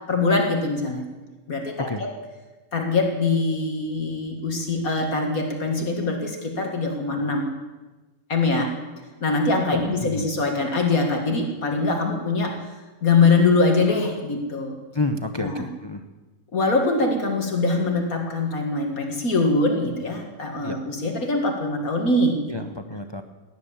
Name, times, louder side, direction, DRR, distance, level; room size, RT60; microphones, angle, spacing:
voice 1, 0.1-1.0 1.5-2.1 2.7-7.5 8.3-8.7 9.2-12.6 13.0-14.8 15.4-15.7 16.5-22.5, left 3 dB, 60° left, 3 dB, 2.2 m, -23 dB
voice 2, 9.7-10.3 14.9-16.0 20.6-20.8 22.5-23.2, left 2 dB, 35° left, 7 dB, 0.4 m, -29 dB
18.0 x 10.5 x 7.2 m, 1.2 s
omnidirectional pair, 1.7 m